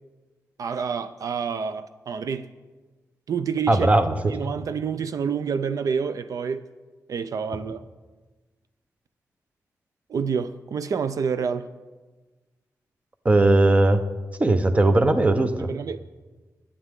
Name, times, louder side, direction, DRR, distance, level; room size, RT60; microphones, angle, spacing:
voice 1, 0.6-2.5 3.3-3.9 4.2-6.7 7.1-7.8 10.1-11.7 15.7-16.1, right 6 dB, 65° right, 0.5 m, -28 dB
voice 2, 3.7-4.3 13.2-14.0 14.4-15.7, right 2 dB, 20° right, 0.8 m, -18 dB
17.5 x 10.0 x 3.7 m
wide cardioid pair, 140°, 6 cm